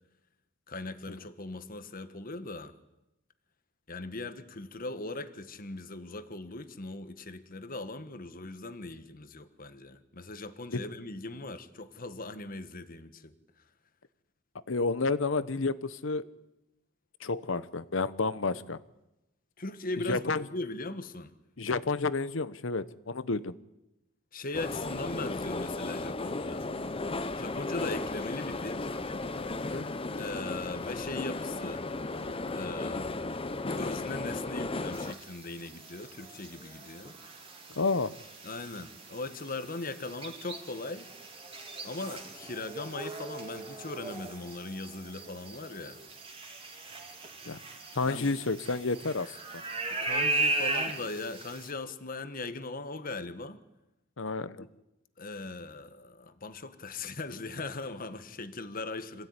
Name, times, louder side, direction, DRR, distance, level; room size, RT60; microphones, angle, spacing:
voice 1, 0.7-2.7 3.9-13.6 19.6-21.3 24.3-26.7 27.3-28.9 30.2-31.8 32.5-33.2 33.7-37.1 38.4-41.1 41.8-46.0 48.0-48.4 49.9-53.6 54.6-54.7 55.2-59.3, left 3 dB, 45° left, 11 dB, 1.5 m, -39 dB
voice 2, 14.7-16.2 17.2-18.8 20.1-20.4 21.6-23.6 29.7-30.0 37.8-38.1 47.5-47.6 48.0-49.4 54.2-54.7, left 3 dB, 70° left, 15 dB, 1.0 m, -30 dB
Tbilisi Metro Station, 24.5-35.1, left 2 dB, 30° left, 0.9 m, -35 dB
sound 1, 34.9-51.7, right 2 dB, 30° right, 3.0 m, -38 dB
26.0 x 16.0 x 9.7 m, 0.95 s
head